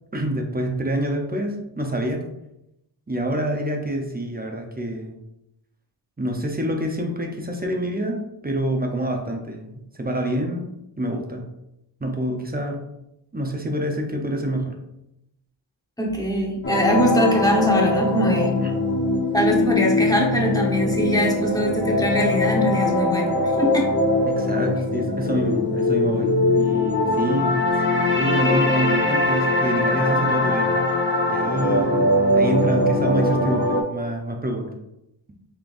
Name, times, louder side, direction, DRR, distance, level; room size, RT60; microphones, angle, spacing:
voice 1, 0.1-2.3 3.1-5.2 6.2-10.7 11.0-11.5 12.0-12.8 13.3-14.8 18.6-18.7 24.3-27.6 28.1-30.8 31.3-34.7, right 1 dB, 20° right, 2 dB, 0.6 m, -27 dB
voice 2, 16.0-18.5 19.3-23.9, equal, 10° left, -2 dB, 1.0 m, -22 dB
sound 1, 16.6-33.8, left 2 dB, 25° left, 0.6 m, -21 dB
3.7 x 3.3 x 2.5 m, 0.85 s
wide cardioid pair, 55°, 46 cm